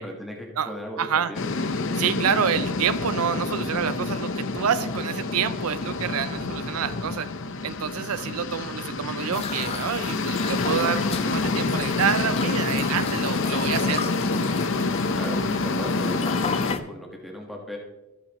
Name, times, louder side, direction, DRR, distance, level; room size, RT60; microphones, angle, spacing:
voice 1, 0.0-1.4 11.6-11.8 15.1-17.8, left 1 dB, ahead, -1 dB, 1.4 m, -37 dB
voice 2, 1.0-1.3 1.9-7.3 7.6-14.0, right 8 dB, 75° right, 14 dB, 0.5 m, -27 dB
sound 1, 1.3-16.7, left 3 dB, 60° left, 0.8 m, -27 dB
sound 2, 9.3-16.8, left 5 dB, 25° left, 0.5 m, -34 dB
24.0 x 8.9 x 3.0 m, 1.0 s
head